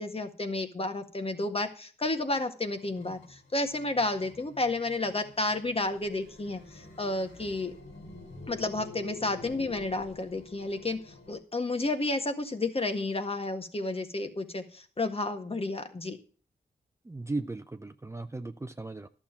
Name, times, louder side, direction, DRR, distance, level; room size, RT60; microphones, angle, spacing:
voice 1, 0.0-7.7 8.5-11.0 11.3-16.2, left 2 dB, 35° left, 7 dB, 1.7 m, -31 dB
sound 1, 2.6-11.3, left 4 dB, 90° left, 4.2 m, -49 dB
voice 2, 17.1-19.1, right 2 dB, 15° right, 9 dB, 0.7 m, -36 dB
11.5 x 7.2 x 6.0 m, 0.39 s
supercardioid pair, 45°, 17 cm